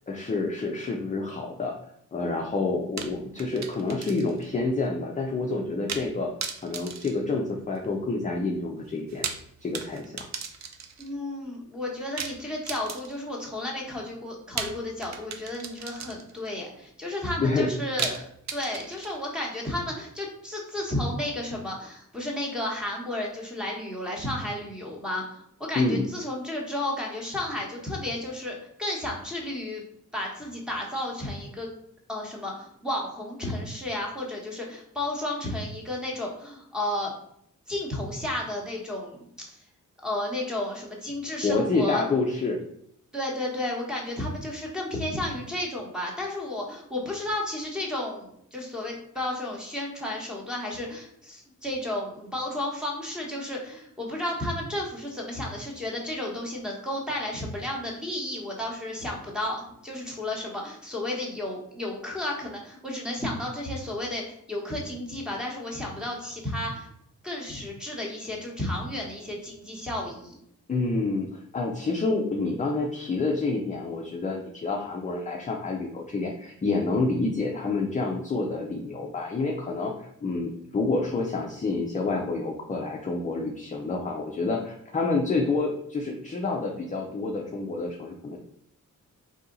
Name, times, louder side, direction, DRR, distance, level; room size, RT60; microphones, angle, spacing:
voice 1, 0.1-1.7 2.1-6.3 6.6-9.3 9.6-10.2 17.4-17.7 25.7-26.0 41.4-42.6 70.7-88.4, left 3 dB, 25° left, 1 dB, 0.4 m, -28 dB
sound 1, 3.0-4.5 4.8-4.9 5.9-6.1 6.4-7.9 9.0-11.1 12.2-13.4 14.6-16.5 18.0-19.4, right 6 dB, 60° right, 0.6 m, -36 dB
voice 2, 11.0-18.3 18.5-29.8 30.1-31.7 32.1-37.1 37.7-39.6 40.0-42.0 43.1-66.9 67.2-70.4, left 1 dB, ahead, -2 dB, 1.1 m, -32 dB
4.1 x 2.8 x 3.8 m, 0.71 s
wide cardioid pair, 140°, 31 cm